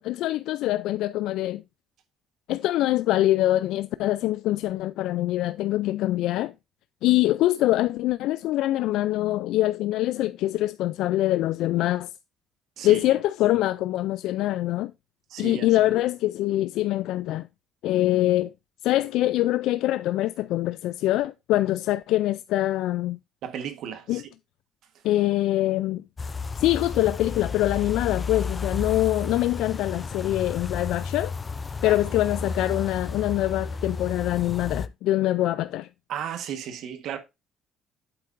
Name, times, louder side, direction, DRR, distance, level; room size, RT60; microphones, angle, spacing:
voice 1, 0.0-1.6 2.5-6.5 7.0-12.1 12.8-14.9 15.4-17.5 17.8-18.5 18.8-23.2 24.1-24.2 25.0-26.0 26.6-31.3 31.8-35.9, left 15 dB, 80° left, 0.3 m, -24 dB
voice 2, 15.3-15.7 23.4-24.2 31.8-32.0 36.1-37.2, right 8 dB, 65° right, 1.3 m, -34 dB
sound 1, 26.2-34.9, left 4 dB, 20° left, 0.5 m, -32 dB
8.6 x 7.7 x 2.5 m
cardioid pair, 145°, 0 cm